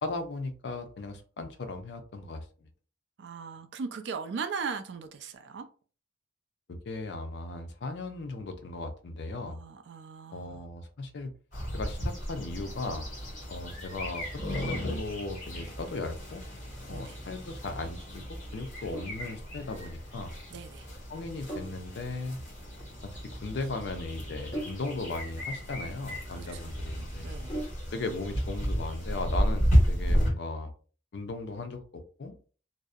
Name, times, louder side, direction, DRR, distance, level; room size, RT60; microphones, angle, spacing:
voice 1, 0.0-2.7 6.7-9.6 10.3-11.3 11.7-13.1 13.5-16.4 16.9-18.2 18.5-20.3 21.1-22.4 23.0-27.2 27.9-30.7 31.1-32.4, left 3 dB, 65° left, 0.4 m, -37 dB
voice 2, 3.2-5.7 9.5-10.6 16.9-17.2 20.5-20.9 26.3-26.6 27.2-27.6, right 5 dB, 65° right, 0.4 m, -38 dB
sound 1, 11.5-30.3, equal, 40° left, 1.3 m, -33 dB
Sink (filling or washing), 18.9-28.1, right 1 dB, 20° left, 1.0 m, -44 dB
2.6 x 2.0 x 2.3 m
head